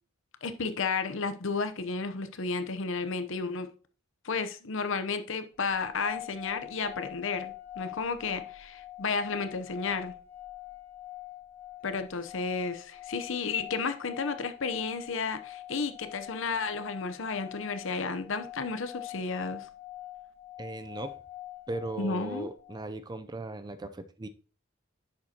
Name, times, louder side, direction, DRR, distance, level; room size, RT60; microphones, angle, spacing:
voice 1, 0.4-3.7 4.2-10.1 11.8-19.7 22.0-22.5, left 4 dB, 65° left, 0.8 m, -32 dB
sound 1, 5.7-22.9, left 14 dB, 10° left, 1.9 m, -44 dB
voice 2, 20.6-21.2 21.7-24.3, right 2 dB, 20° right, 0.4 m, -38 dB
10.5 x 7.4 x 2.8 m
head